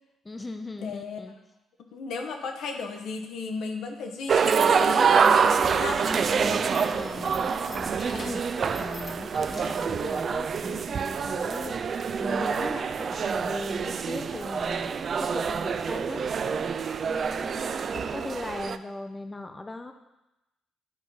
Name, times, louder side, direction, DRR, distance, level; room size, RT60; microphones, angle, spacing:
voice 1, 0.2-1.3 6.0-19.9, left 2 dB, 20° left, 7 dB, 0.5 m, -39 dB
voice 2, 0.8-1.2 1.9-6.0, left 4 dB, 75° left, 4 dB, 0.9 m, -35 dB
sound 1, 4.3-10.3, right 2 dB, 20° right, 0.9 m, -49 dB
sound 2, 4.3-18.8, right 6 dB, 50° right, 0.3 m, -26 dB
sound 3, 5.2-9.9, left 3 dB, 50° left, 1.1 m, -46 dB
9.6 x 4.1 x 4.6 m, 0.97 s
cardioid pair, 90°, 0 cm